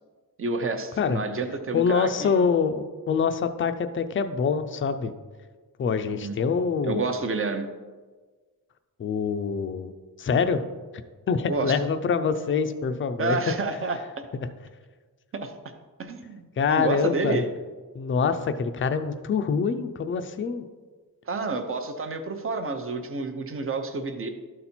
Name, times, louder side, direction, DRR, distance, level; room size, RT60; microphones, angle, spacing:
voice 1, 0.4-2.4 6.1-6.4 6.8-7.7 11.5-11.8 13.2-14.2 15.3-15.5 16.0-17.4 21.3-24.3, right 3 dB, 35° right, 7 dB, 0.7 m, -29 dB
voice 2, 1.7-5.1 5.8-7.0 9.0-9.9 10.2-10.6 11.3-13.4 14.3-14.5 16.6-17.4 17.9-20.6, left 5 dB, 35° left, 9 dB, 0.4 m, -25 dB
12.5 x 4.2 x 4.3 m, 1.4 s
wide cardioid pair, 180°, 36 cm